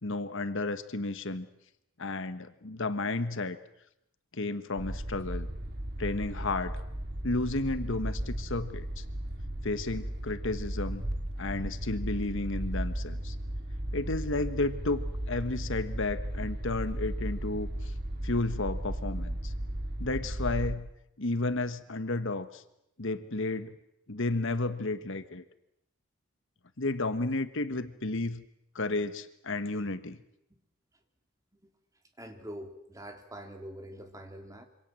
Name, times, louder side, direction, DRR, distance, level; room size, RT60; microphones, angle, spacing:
voice 1, 0.0-1.5 2.0-3.6 4.3-5.5 6.0-6.8 7.2-9.0 9.6-11.0 11.4-13.4 13.9-17.9 18.2-19.5 20.0-20.9 21.2-22.6 23.0-23.7 24.1-25.4 26.8-28.4 28.7-30.2, left 2 dB, 55° left, 12 dB, 1.3 m, -32 dB
sound 1, 4.8-20.7, right 1 dB, 45° right, 2.6 m, -35 dB
voice 2, 32.2-34.6, equal, 15° right, 5 dB, 3.2 m, -44 dB
27.0 x 26.0 x 7.7 m, 0.81 s
head